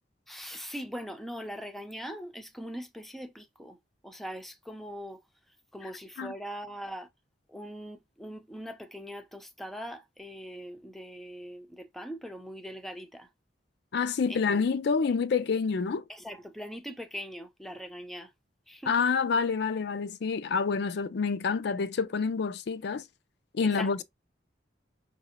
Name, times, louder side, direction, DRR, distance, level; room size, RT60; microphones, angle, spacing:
voice 1, 0.3-3.8 4.0-5.2 5.7-7.1 7.5-13.3 14.3-14.6 16.1-18.3 18.7-18.9 23.6-23.9, equal, ahead, 0.5 m, -41 dB
voice 2, 13.9-16.0 18.9-23.0 23.5-24.0, left 5 dB, 65° left, 0.4 m, -28 dB
5.7 x 2.7 x 2.9 m
head